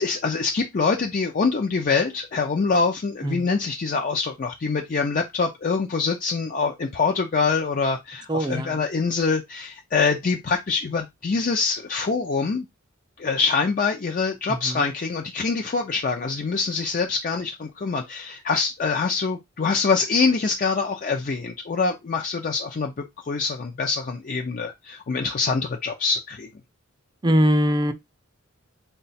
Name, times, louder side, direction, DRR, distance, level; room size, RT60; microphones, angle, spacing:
voice 1, 0.0-12.7 13.2-22.9 23.2-26.5, left 4 dB, 40° left, 0.4 m, -24 dB
voice 2, 8.3-8.8 14.6-14.8 27.2-27.9, equal, 20° right, 0.4 m, -21 dB
3.7 x 2.2 x 4.1 m
head